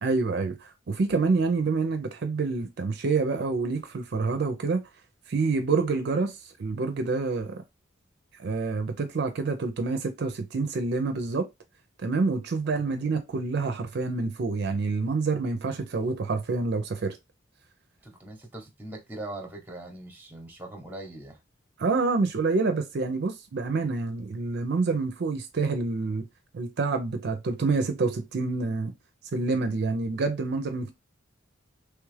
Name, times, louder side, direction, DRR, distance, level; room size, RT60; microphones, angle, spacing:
voice 1, 0.0-4.8 5.3-7.6 8.4-11.5 12.0-17.2 21.8-26.3 26.5-28.9 29.3-30.9, right 4 dB, 55° right, 0.4 m, -27 dB
voice 2, 18.0-21.4, right 2 dB, 10° right, 0.8 m, -41 dB
3.2 x 2.3 x 3.2 m
head